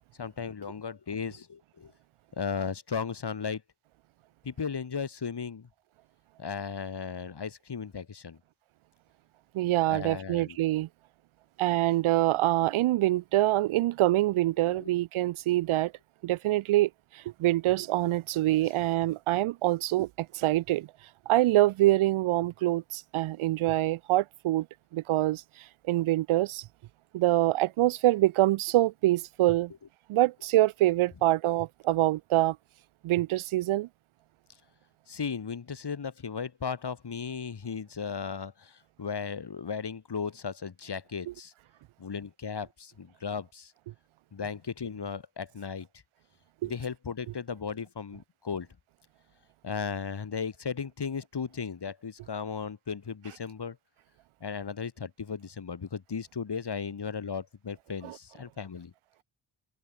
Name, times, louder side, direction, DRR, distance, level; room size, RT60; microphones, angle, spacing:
voice 1, 0.2-1.9 2.4-3.6 4.4-5.7 6.4-8.4 9.9-10.6 14.7-15.0 35.1-41.5 42.0-43.7 44.3-45.9 46.6-48.7 49.6-53.8 54.4-58.9, left 6 dB, 55° left, 5.0 m, -36 dB
voice 2, 9.5-10.9 11.6-15.9 16.2-20.9 21.3-24.7 24.9-26.7 27.1-29.7 30.1-32.6 33.0-33.9 46.6-46.7 58.0-58.2, right 16 dB, 80° right, 0.7 m, -25 dB
cardioid pair, 50°, 48 cm